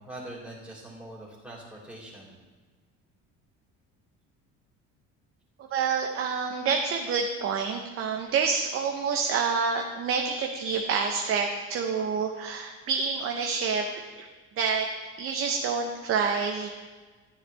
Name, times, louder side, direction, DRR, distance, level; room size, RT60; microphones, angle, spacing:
voice 1, 0.0-2.3, right 1 dB, 5° right, -6 dB, 3.3 m, -43 dB
voice 2, 5.7-13.8 14.2-14.3 14.6-14.9 15.2-16.7, right 5 dB, 45° right, 3 dB, 0.9 m, -27 dB
13.0 x 9.9 x 3.4 m, 1.4 s
cardioid pair, 135°, 29 cm